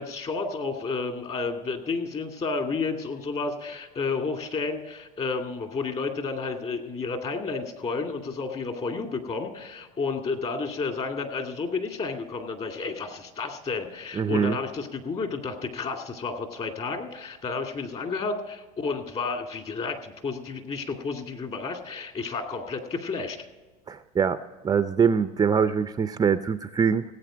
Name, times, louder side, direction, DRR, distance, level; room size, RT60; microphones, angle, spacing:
voice 1, 0.0-23.4, left 4 dB, 35° left, 4 dB, 2.3 m, -31 dB
voice 2, 14.2-14.6 23.9-24.4 24.6-27.0, right 6 dB, 20° right, 11 dB, 0.5 m, -23 dB
17.5 x 8.5 x 5.1 m, 1.2 s
supercardioid pair, 100°, 19 cm